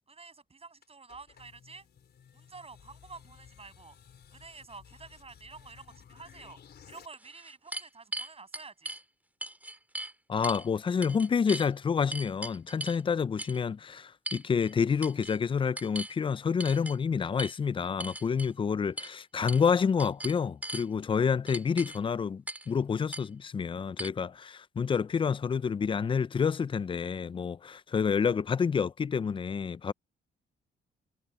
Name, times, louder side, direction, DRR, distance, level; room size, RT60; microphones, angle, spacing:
voice 1, 0.1-1.9 2.3-4.0 4.3-6.6 6.9-9.0, right 4 dB, 30° right, 7.0 m, -49 dB
sound 1, 0.8-7.1, left 8 dB, 55° left, 4.5 m, -56 dB
sound 2, 6.5-6.6 7.1-9.0 9.4-10.1 10.4-10.7 11.0-11.7 12.1-13.0 13.4-13.6 14.3-14.7 15.0-15.4 15.8-16.1 16.6-17.0 17.4-17.5 18.0-18.5 19.0-19.1 19.5-19.7 20.0-20.9 21.5-22.0 22.5-22.7 23.1-23.2 24.0-24.1, right 1 dB, 10° right, 2.5 m, -39 dB
voice 2, 10.3-29.9, left 6 dB, 25° left, 0.4 m, -28 dB
cardioid pair, 90°, 20 cm